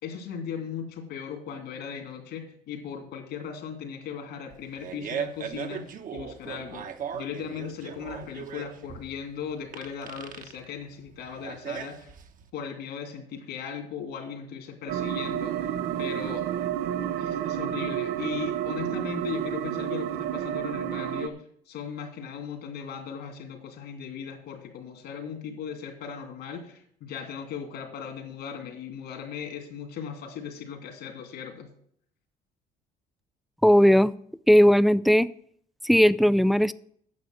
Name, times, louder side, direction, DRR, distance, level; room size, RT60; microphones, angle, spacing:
voice 1, 0.0-6.9 7.1-12.1 12.5-15.7 16.0-16.5 17.2-21.4 21.7-31.7, left 7 dB, 75° left, 5 dB, 2.7 m, -38 dB
Fart, 4.5-12.5, right 7 dB, 55° right, 1.1 m, -38 dB
sound 1, 14.9-21.3, right 11 dB, 80° right, 0.7 m, -30 dB
voice 2, 33.6-34.1 34.5-35.3 35.8-36.7, equal, ahead, 16 dB, 0.4 m, -18 dB
9.5 x 6.7 x 7.7 m, 0.64 s
cardioid pair, 110°, 17 cm